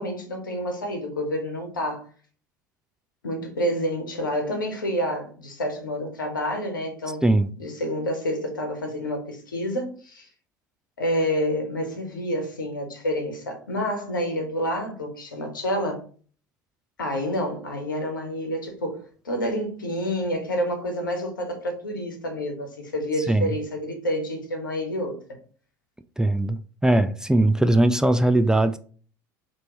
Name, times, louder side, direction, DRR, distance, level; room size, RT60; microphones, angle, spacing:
voice 1, 0.0-2.0 3.2-7.2 7.6-10.3 11.0-16.0 17.0-25.2, equal, 85° left, 1.1 m, -28 dB
voice 2, 26.2-28.8, right 1 dB, 5° right, 0.3 m, -20 dB
4.4 x 3.0 x 3.0 m
figure-of-eight pair, 70°, 11 cm